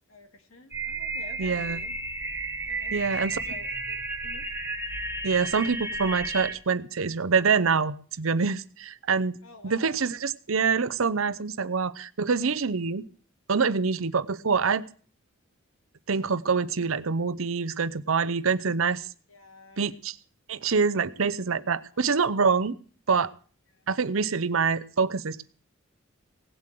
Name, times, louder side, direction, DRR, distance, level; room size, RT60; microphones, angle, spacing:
voice 1, 0.1-1.9 2.7-4.5 9.4-10.1 14.1-14.2 19.3-19.9 21.9-22.0 23.7-23.9, left 2 dB, 80° left, 5 dB, 2.5 m, -50 dB
sound 1, 0.7-6.6, right 2 dB, 10° right, 1.3 m, -33 dB
voice 2, 1.4-1.8 2.9-3.4 5.2-9.4 9.6-13.0 13.5-14.8 16.1-19.1 19.8-20.2 20.5-22.7 23.1-23.3 23.9-25.4, right 5 dB, 80° right, 13 dB, 0.7 m, -25 dB
17.5 x 7.7 x 7.6 m, 0.42 s
head